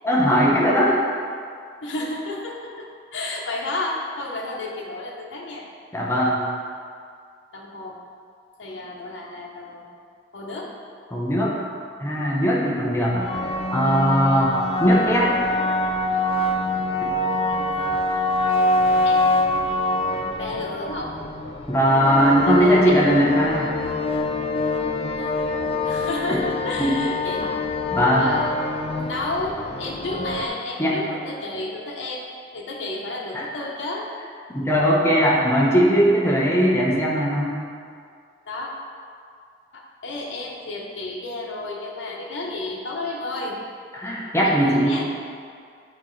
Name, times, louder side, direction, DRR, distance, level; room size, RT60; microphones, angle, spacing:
voice 1, 0.0-1.0 5.9-6.4 11.1-11.5 12.0-13.3 13.7-15.3 17.0-17.1 21.7-23.7 26.3-26.4 26.8-26.9 27.9-28.3 30.8-31.0 33.3-33.5 34.5-37.6 43.9-45.0, equal, 15° left, -4 dB, 0.8 m, -19 dB
voice 2, 1.8-5.7 7.5-8.0 8.6-9.9 10.3-10.7 17.2-17.9 19.0-19.2 19.7-20.1 20.4-21.2 22.4-23.0 25.2-25.3 25.8-27.6 28.1-28.7 29.1-32.3 32.5-34.1 38.5-38.7 39.7-43.6 44.4-45.1, left 2 dB, 85° left, -3 dB, 0.8 m, -32 dB
sound 1, 12.9-30.5, left 2 dB, 30° left, 0.4 m, -25 dB
8.8 x 4.2 x 3.2 m, 2.2 s
head